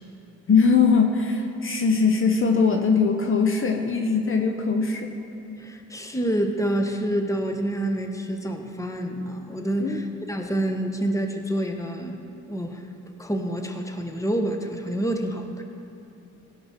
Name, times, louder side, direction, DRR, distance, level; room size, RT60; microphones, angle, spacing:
voice 1, 0.5-5.1 9.8-10.0, left 5 dB, 40° left, 3 dB, 1.0 m, -21 dB
voice 2, 5.6-12.8 13.2-15.6, right 1 dB, 10° left, 4 dB, 1.2 m, -28 dB
16.0 x 6.1 x 4.4 m, 2.8 s
supercardioid pair, 50°, 31 cm